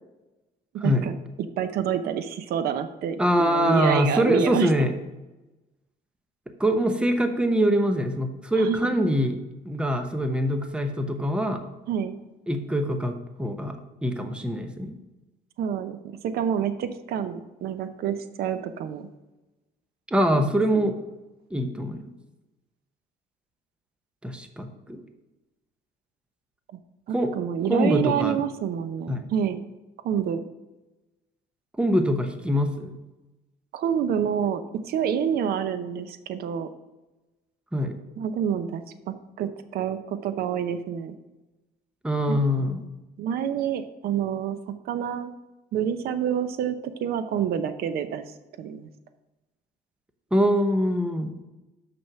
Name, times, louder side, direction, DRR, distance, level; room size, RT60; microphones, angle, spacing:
voice 1, 0.8-4.7 8.5-8.8 11.9-12.1 15.6-16.0 16.2-19.1 20.3-20.5 20.7-20.9 27.1-29.6 30.0-30.4 33.7-36.7 38.2-41.2 42.3-42.8 43.2-45.3 45.7-46.7 47.0-48.9, right 8 dB, 65° right, 11 dB, 0.7 m, -28 dB
voice 2, 3.2-4.9 6.6-9.4 9.6-11.6 12.5-13.8 14.0-14.9 20.1-21.0 21.5-22.0 24.2-25.0 27.1-27.3 27.7-28.4 29.1-29.3 31.8-33.0 37.7-37.9 42.0-42.8 50.3-51.3, equal, 5° right, 6 dB, 0.8 m, -24 dB
6.3 x 6.1 x 6.0 m, 1.1 s
cardioid pair, 110°, 17 cm